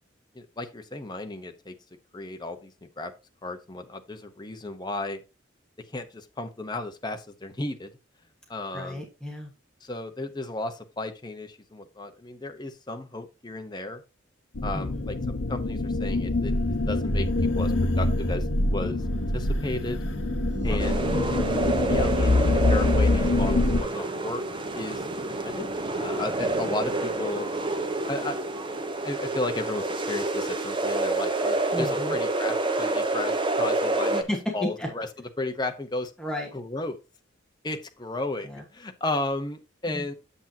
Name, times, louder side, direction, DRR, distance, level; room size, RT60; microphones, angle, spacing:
voice 1, 0.3-1.7 2.1-3.1 3.4-5.2 5.9-7.9 8.5-9.1 9.8-14.0 14.6-15.1 15.5-16.6 16.9-17.3 17.6-20.0 20.6-21.0 21.9-24.4 24.7-25.7 26.0-27.5 28.1-28.4 28.9-34.2 34.5-35.1 35.4-36.1 36.5-37.0 37.6-40.1, left 2 dB, 20° left, 6 dB, 0.9 m, -34 dB
voice 2, 8.7-9.5 14.7-15.1 20.6-20.8 21.1-21.4 31.7-32.2 34.1-34.9 36.2-36.5 38.4-38.6 39.9-40.1, left 1 dB, 5° left, -1 dB, 1.4 m, -33 dB
sound 1, 14.5-23.8, left 2 dB, 75° left, 1.0 m, -25 dB
sound 2, 18.3-30.6, right 1 dB, 60° right, 1.5 m, -43 dB
sound 3, 20.8-34.2, right 2 dB, 25° right, 0.8 m, -28 dB
8.2 x 7.3 x 2.8 m, 0.29 s
head